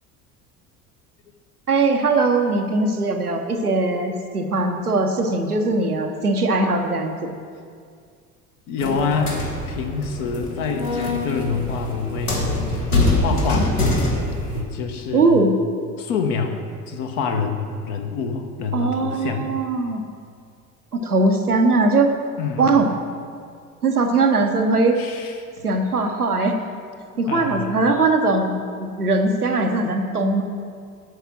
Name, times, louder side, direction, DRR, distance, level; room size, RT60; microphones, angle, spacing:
voice 1, 1.7-7.1 15.1-15.5 18.7-20.0 20.9-22.1 22.6-22.9 23.8-25.0 25.6-26.6 27.2-28.5 28.8-30.4, right 3 dB, 90° right, 4 dB, 0.7 m, -20 dB
voice 2, 8.7-12.5 12.7-12.8 13.2-13.7 14.5-15.5 16.0-19.5 22.4-22.7 25.0-25.8 27.3-27.7, left 5 dB, 55° left, 5 dB, 1.0 m, -27 dB
sound 1, 8.8-14.6, left 2 dB, 80° left, 1.4 m, -24 dB
8.1 x 4.9 x 6.1 m, 2.1 s
figure-of-eight pair, 60°, 44 cm